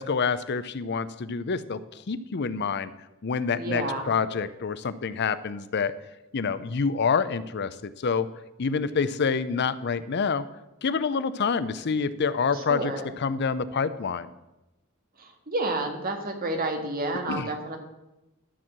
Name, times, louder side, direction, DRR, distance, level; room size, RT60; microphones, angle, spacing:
voice 1, 0.0-1.8 2.1-2.9 3.2-5.9 6.3-8.3 8.6-10.4 10.8-14.3 17.3-17.5, left 5 dB, 55° left, 14 dB, 0.6 m, -27 dB
voice 2, 3.5-4.1 12.5-13.0 15.2-17.8, right 2 dB, 45° right, 4 dB, 1.8 m, -30 dB
12.5 x 4.6 x 7.3 m, 0.96 s
head